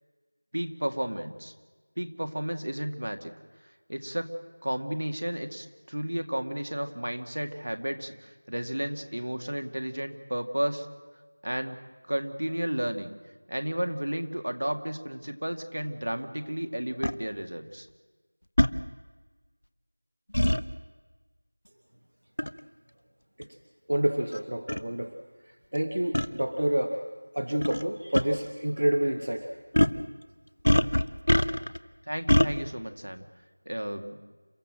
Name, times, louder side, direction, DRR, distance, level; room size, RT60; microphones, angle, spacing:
voice 1, 0.5-1.5 2.0-3.3 3.9-4.3 4.6-10.9 11.4-11.8 12.1-13.1 13.5-17.9 32.1-33.3 33.7-34.2, right 1 dB, 70° right, 6 dB, 2.1 m, -32 dB
sound 1, 17.0-17.2 18.6-18.8 20.3-20.6 22.4-22.6 23.4-23.5 24.3-24.4 24.7-24.8 26.1-26.3 27.6-27.8 28.1-28.2 29.7-30.0 30.6-31.8 32.3-32.5, equal, 85° left, 0.9 m, -23 dB
voice 2, 23.9-25.1 25.7-27.0 27.3-29.5, right 1 dB, 50° right, 6 dB, 1.2 m, -28 dB
29.0 x 14.0 x 7.6 m, 1.3 s
figure-of-eight pair, 180°, 0 cm